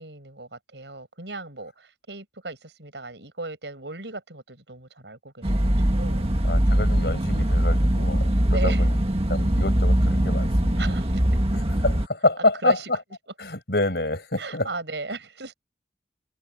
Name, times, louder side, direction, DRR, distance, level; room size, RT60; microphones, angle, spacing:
voice 1, 0.0-6.3 8.5-8.9 10.8-11.4 12.6-12.9 14.4-15.5, right 2 dB, 85° right, 6.3 m, -36 dB
sound 1, 5.4-12.1, equal, 35° right, 1.7 m, -22 dB
voice 2, 6.4-9.0 9.3-10.8 11.5-12.8 13.4-14.7, left 2 dB, 65° left, 8.0 m, -27 dB
head